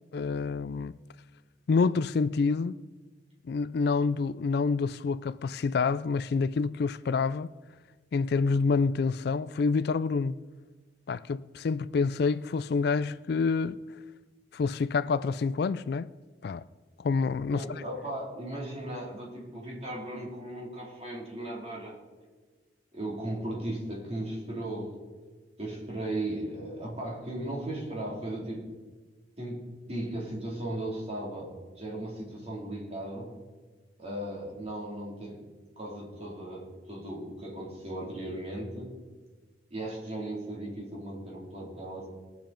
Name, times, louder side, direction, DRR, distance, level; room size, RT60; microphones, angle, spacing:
voice 1, 0.1-1.0 1.7-2.7 3.4-7.5 8.1-10.4 11.1-13.8 14.5-16.1 16.4-16.6 17.0-17.8, left 4 dB, 60° left, 0.4 m, -27 dB
voice 2, 17.5-21.9 22.9-25.0 25.6-28.7 29.4-31.5 31.8-33.3 34.0-35.4 35.8-38.9 39.7-42.1, right 1 dB, 35° right, 3.7 m, -36 dB
21.0 x 7.4 x 4.5 m
head